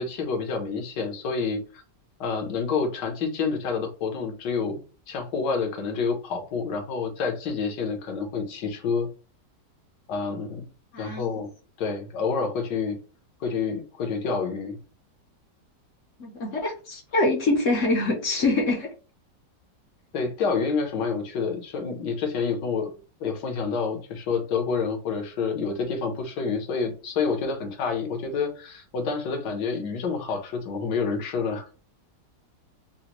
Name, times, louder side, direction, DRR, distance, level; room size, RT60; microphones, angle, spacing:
voice 1, 0.0-1.6 2.2-4.8 5.1-9.1 10.1-10.7 11.0-11.5 11.8-13.0 13.4-14.8 20.1-22.9 23.2-31.7, left 5 dB, 75° left, 4 dB, 1.5 m, -28 dB
voice 2, 10.9-11.3 16.2-18.9, left 2 dB, 60° left, 1 dB, 0.8 m, -24 dB
4.0 x 2.1 x 2.9 m, 0.35 s
omnidirectional pair, 1.9 m